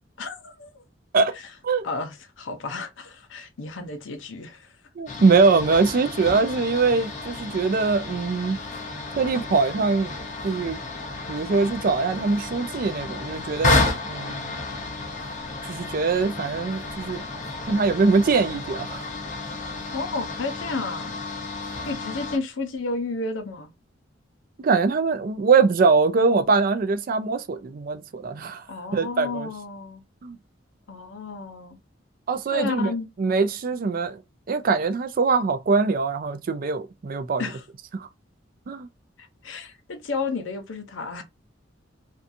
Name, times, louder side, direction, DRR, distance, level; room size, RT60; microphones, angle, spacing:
voice 1, 0.2-0.8 1.8-4.7 19.9-21.1 21.8-23.7 28.7-30.0 30.9-31.8 32.5-33.1 37.4-37.6 39.2-41.2, left 3 dB, 80° left, 0.6 m, -32 dB
voice 2, 5.0-8.6 9.2-10.1 10.4-10.8 11.3-14.5 15.6-17.2 17.6-19.1 24.6-28.6 28.9-29.5 30.2-30.4 32.3-32.9 33.2-34.2 34.5-37.4 37.9-38.1 38.7-38.9, right 4 dB, 50° right, 0.4 m, -22 dB
sound 1, 5.1-22.4, left 3 dB, 40° left, 0.7 m, -31 dB
2.6 x 2.3 x 2.6 m
head